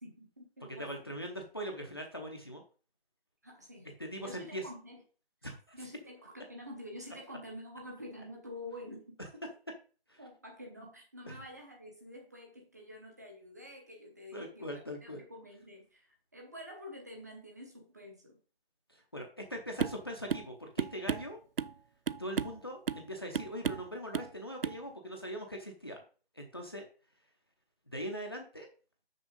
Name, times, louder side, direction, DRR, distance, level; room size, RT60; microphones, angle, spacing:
voice 1, 0.0-1.0 3.4-5.0 5.7-9.2 10.2-18.4, left 1 dB, 15° right, 0 dB, 1.0 m, -48 dB
voice 2, 0.8-2.6 4.0-4.6 5.4-5.6 10.1-10.2 11.3-11.4 14.3-15.2 18.9-21.4 22.2-26.0 26.3-26.8 27.9-28.7, equal, 25° left, 2 dB, 0.7 m, -41 dB
sound 1, 19.8-20.0 20.3-20.5 20.8-21.8 22.1-22.6 22.9-23.1 23.3-23.9 24.1-24.3 24.6-24.8, right 7 dB, 65° right, 0.5 m, -34 dB
6.2 x 5.9 x 5.2 m, 0.38 s
hypercardioid pair, 175°, 31 cm